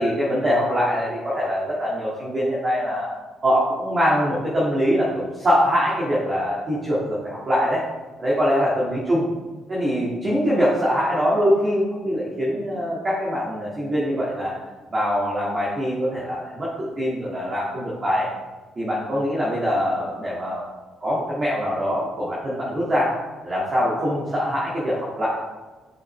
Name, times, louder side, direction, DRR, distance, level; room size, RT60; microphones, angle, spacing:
voice 1, 0.0-3.1 3.4-7.8 8.2-9.2 9.7-14.5 14.9-18.3 18.8-20.6 21.0-23.1 23.4-25.4, equal, 30° right, -7 dB, 1.9 m, -23 dB
8.0 x 7.0 x 3.2 m, 1.2 s
cardioid pair, 120°, 0 cm